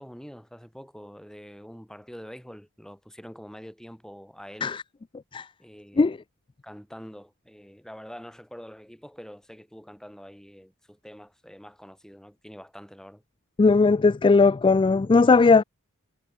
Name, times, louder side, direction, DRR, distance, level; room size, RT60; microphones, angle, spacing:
voice 1, 0.0-4.7 5.6-6.2 6.6-13.2, equal, 5° left, 6.6 m, -45 dB
voice 2, 13.6-15.6, left 4 dB, 20° left, 0.3 m, -18 dB
head